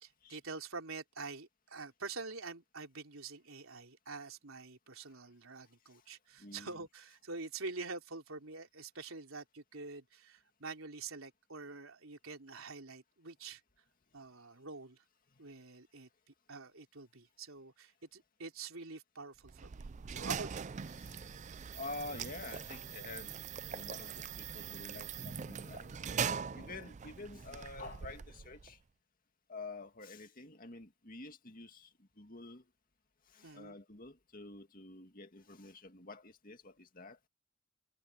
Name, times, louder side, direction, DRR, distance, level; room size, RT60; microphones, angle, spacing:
voice 1, 0.0-13.6 14.1-15.0 15.4-16.1 16.5-20.7 33.4-33.8, right 4 dB, 70° right, 3.6 m, -46 dB
voice 2, 6.4-6.9 15.3-15.4 20.9-21.3 21.7-23.3 23.6-28.8 29.5-32.7 33.3-37.2, left 3 dB, 40° left, 2.2 m, -49 dB
sound 1, 19.4-28.7, right 7 dB, 35° right, 0.4 m, -42 dB
head